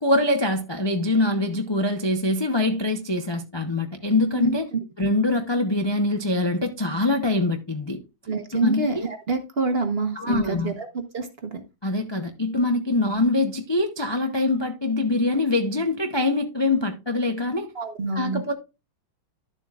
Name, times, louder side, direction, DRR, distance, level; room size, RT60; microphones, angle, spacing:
voice 1, 0.0-4.7 5.0-8.0 8.5-9.1 10.2-10.7 11.8-17.7 18.1-18.5, left 2 dB, 45° left, 0.3 m, -24 dB
voice 2, 8.3-10.9 11.1-11.6 17.7-18.4, right 3 dB, 40° right, 1.1 m, -27 dB
12.0 x 7.3 x 2.4 m
omnidirectional pair, 2.1 m